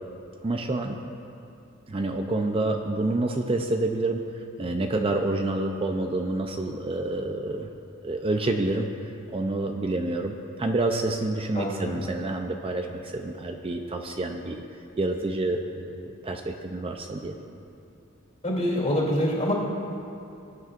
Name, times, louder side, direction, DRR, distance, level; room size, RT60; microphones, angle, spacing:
voice 1, 0.4-1.0 1.9-4.2 4.6-7.7 8.0-8.9 9.3-14.6 15.0-17.3, right 2 dB, 25° right, 4 dB, 0.5 m, -28 dB
voice 2, 11.5-11.9 18.4-19.5, equal, 35° left, -3 dB, 2.7 m, -25 dB
20.0 x 9.4 x 2.5 m, 2.8 s
head